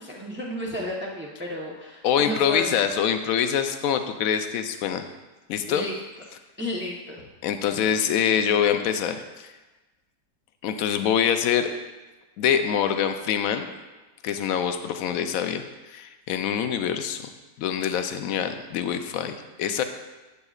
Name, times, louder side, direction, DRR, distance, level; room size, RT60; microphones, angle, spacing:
voice 1, 0.0-2.8 5.7-5.9 6.6-7.2, equal, 15° right, -3 dB, 0.4 m, -32 dB
voice 2, 2.0-5.1 5.5-5.9 7.4-9.5 10.6-11.7 12.4-13.7 14.2-17.3 17.6-19.8, left 8 dB, 70° left, 8 dB, 0.9 m, -25 dB
9.7 x 7.6 x 2.4 m, 1.1 s
omnidirectional pair, 1.9 m